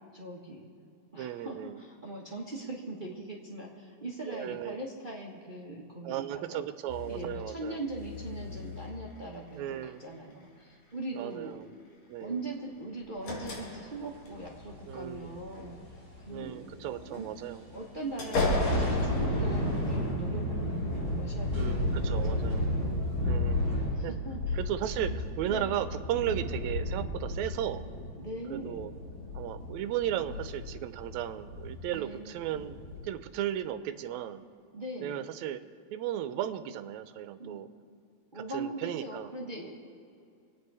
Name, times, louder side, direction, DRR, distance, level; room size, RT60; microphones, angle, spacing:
voice 1, 0.1-0.6 1.1-6.7 7.1-11.6 12.2-15.8 16.2-17.3 17.7-23.1 23.8-24.6 25.0-25.2 25.4-25.7 28.2-28.9 31.9-32.3 34.7-35.2 37.4-37.6 38.3-39.9, right 2 dB, 50° right, -2 dB, 0.6 m, -41 dB
voice 2, 1.2-1.8 4.3-4.8 6.0-7.8 9.5-10.0 11.1-11.8 12.1-12.4 14.9-15.4 16.3-17.7 21.5-22.7 23.2-24.1 24.5-27.9 28.5-28.9 29.3-34.4 35.0-35.6 35.9-37.7 38.4-39.3, right 11 dB, 75° right, 11 dB, 1.9 m, -35 dB
sound 1, 6.9-7.3 7.9-9.2 10.1-10.3 12.8-14.5 15.3-16.2 16.9-20.5 20.9-22.2 22.8-22.9, left 2 dB, 65° left, 3.2 m, -36 dB
sound 2, 14.4-17.3 17.6-17.7 18.2-33.0, left 1 dB, 30° left, 3.6 m, -33 dB
25.0 x 9.3 x 4.8 m, 2.4 s
omnidirectional pair, 3.4 m